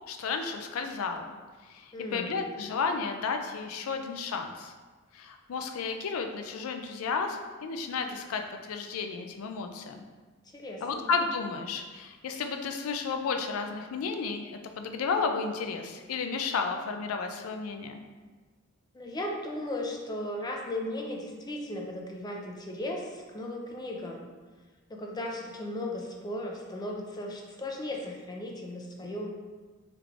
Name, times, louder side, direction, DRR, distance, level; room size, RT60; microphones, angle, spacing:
voice 1, 0.1-1.3 1.7-4.7 5.1-10.0 10.8-18.0, left 5 dB, 90° left, 5 dB, 0.4 m, -32 dB
voice 2, 1.9-2.5 10.5-11.1 18.9-24.3 24.9-29.3, left 1 dB, 20° left, 0 dB, 0.4 m, -36 dB
3.2 x 2.4 x 3.4 m, 1.4 s
head